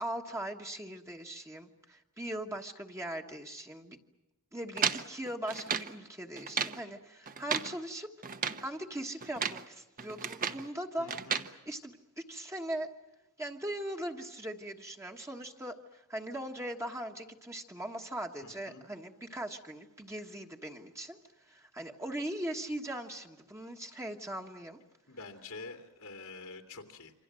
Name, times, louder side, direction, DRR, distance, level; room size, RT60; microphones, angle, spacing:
voice 1, 0.0-4.0 4.5-8.1 8.6-11.2 11.7-12.9 13.4-24.8, right 1 dB, 15° right, 2 dB, 1.3 m, -40 dB
sound 1, 4.8-5.9 6.4-6.8 7.3-7.7 8.2-8.7 9.2-9.7 10.0-10.7 11.1-11.5, right 6 dB, 40° right, 1.1 m, -34 dB
voice 2, 11.0-11.4 18.4-18.8 25.1-27.1, left 3 dB, 85° left, 4 dB, 2.7 m, -47 dB
27.5 x 25.5 x 7.6 m, 1.0 s
head